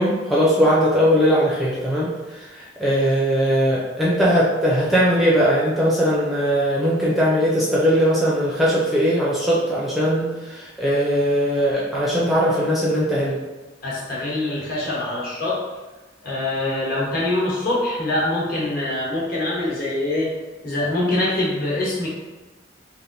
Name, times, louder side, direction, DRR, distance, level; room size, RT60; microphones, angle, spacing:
voice 1, 0.0-13.4, equal, ahead, -7 dB, 0.4 m, -20 dB
voice 2, 13.8-15.6 16.2-20.3 20.6-22.1, left 2 dB, 50° left, -6 dB, 1.1 m, -24 dB
3.2 x 2.6 x 2.6 m, 1.2 s
head